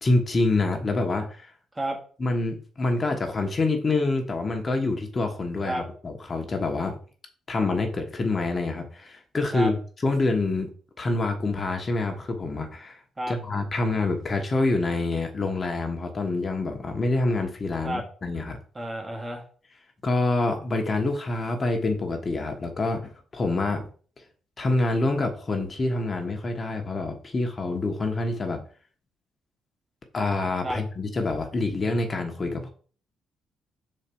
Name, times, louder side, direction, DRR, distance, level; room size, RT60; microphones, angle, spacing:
voice 1, 0.0-1.5 2.2-7.0 7.5-10.7 11.0-13.0 13.3-18.6 20.0-23.9 24.6-28.6 30.1-32.7, left 2 dB, 35° left, 4 dB, 1.4 m, -26 dB
voice 2, 18.8-19.4 30.6-30.8, right 1 dB, 20° right, 1 dB, 1.9 m, -30 dB
5.6 x 4.5 x 5.5 m, 0.42 s
cardioid pair, 90°, 0 cm